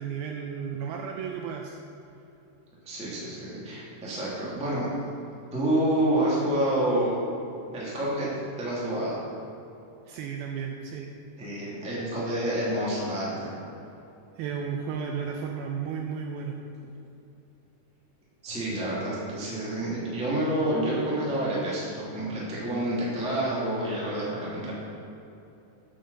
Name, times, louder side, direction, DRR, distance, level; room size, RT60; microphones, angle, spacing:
voice 1, 0.0-1.8 10.1-11.1 14.4-16.6, right 6 dB, 85° right, 2 dB, 2.2 m, -33 dB
voice 2, 2.8-4.9 5.5-7.2 7.7-8.3 8.6-9.2 11.4-13.5 18.4-24.7, right 1 dB, 5° right, -7 dB, 0.8 m, -28 dB
7.7 x 6.9 x 6.6 m, 2.8 s
omnidirectional pair, 4.8 m